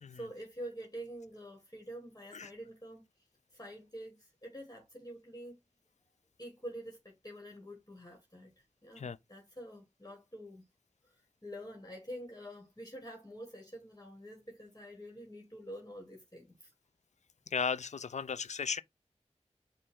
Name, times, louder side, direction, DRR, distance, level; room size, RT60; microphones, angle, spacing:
voice 1, 0.1-3.0 3.5-5.6 6.4-8.5 8.8-10.6 11.0-16.7, equal, 30° left, 1.6 m, -47 dB
voice 2, 17.5-18.8, left 6 dB, 75° left, 0.4 m, -35 dB
5.4 x 2.6 x 3.5 m
wide cardioid pair, 45°, 12 cm